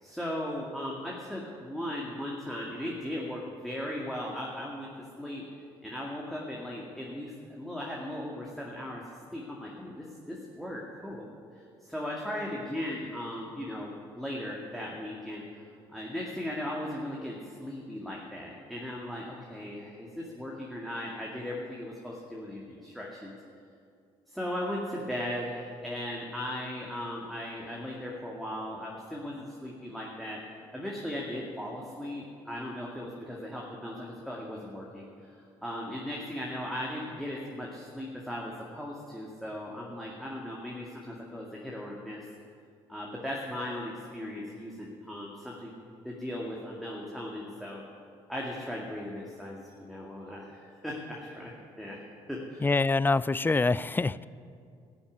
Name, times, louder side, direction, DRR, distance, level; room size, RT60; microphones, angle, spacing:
voice 1, 0.0-4.9 5.2-5.4 5.8-9.0 9.3-11.2 11.6-15.6 15.9-23.3 24.3-30.4 30.7-42.2 42.9-45.7 46.0-47.8 48.3-52.0 52.3-52.7, left 1 dB, ahead, -4 dB, 2.1 m, -37 dB
voice 2, 52.6-54.2, left 3 dB, 15° left, 19 dB, 0.4 m, -25 dB
13.0 x 7.1 x 9.4 m, 2.3 s
hypercardioid pair, 55°, 13 cm